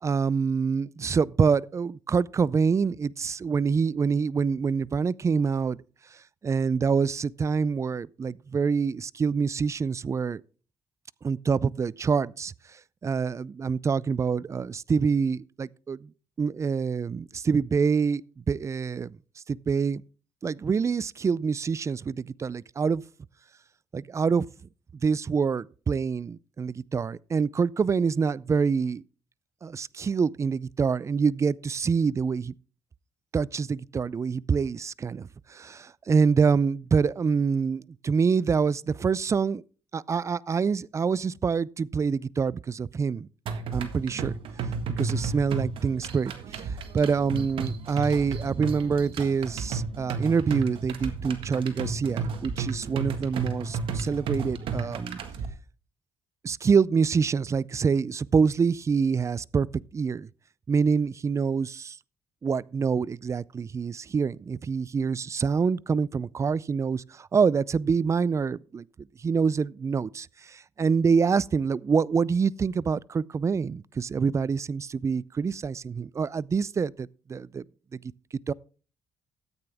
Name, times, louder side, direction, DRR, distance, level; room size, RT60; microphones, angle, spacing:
voice 1, 0.0-5.8 6.4-10.4 11.2-12.5 13.0-16.1 16.4-19.2 19.5-20.0 20.4-23.0 23.9-24.5 25.0-29.0 29.6-32.5 33.3-39.6 39.9-43.3 43.7-44.4 45.0-55.2 56.4-59.7 59.9-60.3 60.7-62.0 62.4-68.8 69.2-77.6 77.9-78.0 78.5-78.6, right 5 dB, 35° right, 0.4 m, -26 dB
sound 1, 43.5-55.5, right 5 dB, 70° right, 1.6 m, -33 dB
13.5 x 8.8 x 3.5 m
cardioid pair, 75°, 9 cm